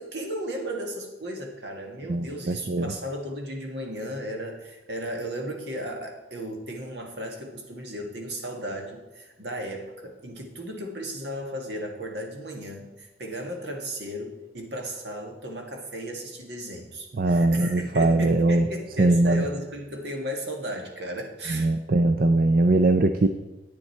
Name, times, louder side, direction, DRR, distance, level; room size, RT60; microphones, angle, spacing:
voice 1, 0.0-21.7, equal, 70° right, 2 dB, 1.8 m, -35 dB
voice 2, 2.1-2.9 17.2-18.7 19.0-19.4 21.5-23.3, right 2 dB, 50° right, 8 dB, 0.5 m, -21 dB
10.0 x 9.1 x 4.5 m, 1.0 s
head